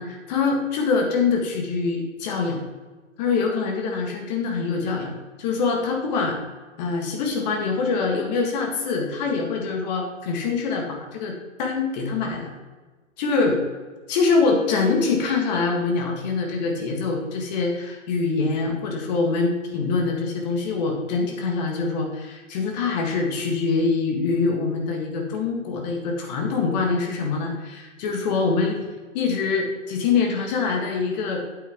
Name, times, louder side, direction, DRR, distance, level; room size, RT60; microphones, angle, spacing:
voice 1, 0.0-2.6 3.2-5.1 5.4-6.4 6.8-12.5 13.2-13.6 14.1-28.8 29.1-31.4, left 4 dB, 35° left, 2 dB, 1.7 m, -24 dB
8.7 x 8.1 x 3.5 m, 1.3 s
hypercardioid pair, 135°, 40 cm